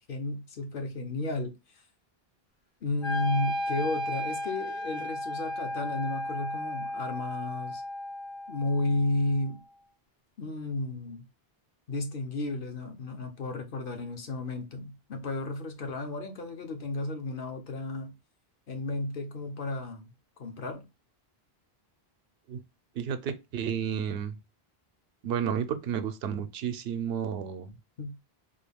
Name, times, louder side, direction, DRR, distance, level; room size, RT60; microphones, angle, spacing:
voice 1, 0.1-1.5 2.8-7.8 8.5-9.6 10.4-11.2 11.9-18.1 18.7-20.1 20.4-20.9 28.0-28.3, left 2 dB, 60° left, 0.9 m, -33 dB
Wind instrument woodwind instrument, 3.0-9.1, left 1 dB, 35° left, 0.6 m, -34 dB
voice 2, 22.9-24.4 25.2-27.7, right 8 dB, 80° right, 0.8 m, -31 dB
3.8 x 2.2 x 3.3 m
omnidirectional pair, 1.0 m